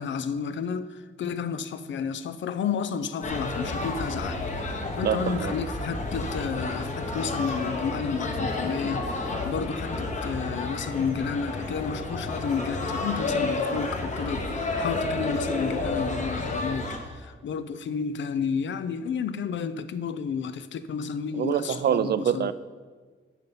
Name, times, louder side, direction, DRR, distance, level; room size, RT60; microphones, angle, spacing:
voice 1, 0.0-4.4 4.7-22.5, left 6 dB, 65° left, 0.5 m, -31 dB
sound 1, 3.2-17.0, left 2 dB, 35° left, 1.2 m, -31 dB
voice 2, 5.0-5.5 21.3-22.5, right 9 dB, 55° right, 0.4 m, -25 dB
8.2 x 6.8 x 5.6 m
wide cardioid pair, 120°, 21 cm